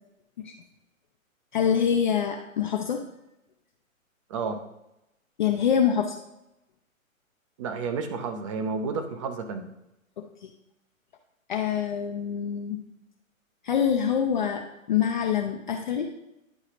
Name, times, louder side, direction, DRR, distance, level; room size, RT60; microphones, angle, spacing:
voice 1, 1.5-3.0 5.4-6.2 10.2-10.5 11.5-12.8 13.6-14.6 14.9-16.1, left 8 dB, 35° left, 3 dB, 0.5 m, -25 dB
voice 2, 7.6-9.7, right 4 dB, 25° right, 7 dB, 0.5 m, -31 dB
10.0 x 4.7 x 2.9 m, 0.88 s
figure-of-eight pair, 130°, 41 cm